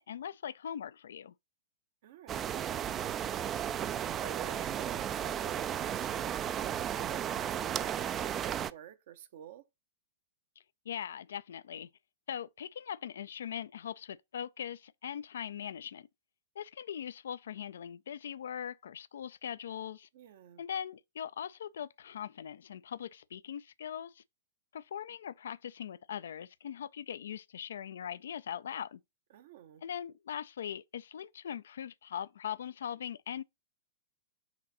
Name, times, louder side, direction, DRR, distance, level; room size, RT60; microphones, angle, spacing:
voice 1, 0.0-1.3 10.9-11.9 12.3-16.1 16.6-20.1 20.6-24.2 24.7-29.0 29.8-33.4, left 9 dB, 65° left, 0.3 m, -41 dB
voice 2, 2.0-9.6 20.1-20.6 29.3-29.8, right 10 dB, 55° right, 0.7 m, -50 dB
sound 1, 2.3-8.7, right 9 dB, 25° right, 0.3 m, -34 dB
5.9 x 3.9 x 4.0 m
figure-of-eight pair, 100°, 0 cm